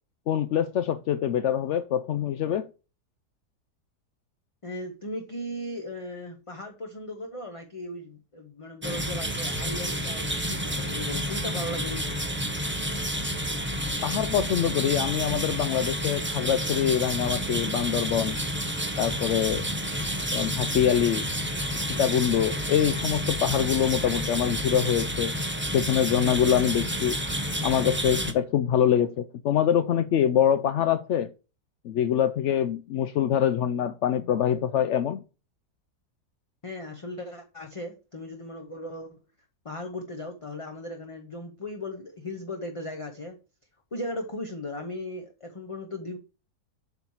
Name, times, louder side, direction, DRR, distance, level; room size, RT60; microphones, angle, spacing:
voice 1, 0.3-2.7 14.0-18.4 19.0-19.7 20.3-21.3 22.0-25.3 25.7-27.2 27.6-31.3 31.8-35.2, left 9 dB, 75° left, 0.7 m, -24 dB
voice 2, 4.6-12.2 36.6-39.1 39.6-43.4 43.9-46.2, left 1 dB, 25° left, 0.8 m, -37 dB
sound 1, 8.8-28.3, equal, 10° right, 0.6 m, -30 dB
7.9 x 4.5 x 7.1 m
omnidirectional pair, 1.7 m